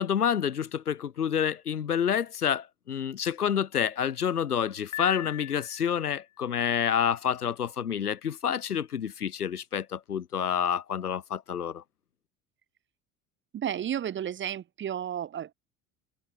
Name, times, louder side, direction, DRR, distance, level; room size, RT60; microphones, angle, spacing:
voice 1, 0.0-11.8, left 8 dB, 85° left, 0.8 m, -28 dB
Piano, 4.9-6.2, left 14 dB, 40° left, 1.7 m, -39 dB
voice 2, 13.5-15.5, right 9 dB, 25° right, 0.9 m, -32 dB
figure-of-eight pair, 65°, 44 cm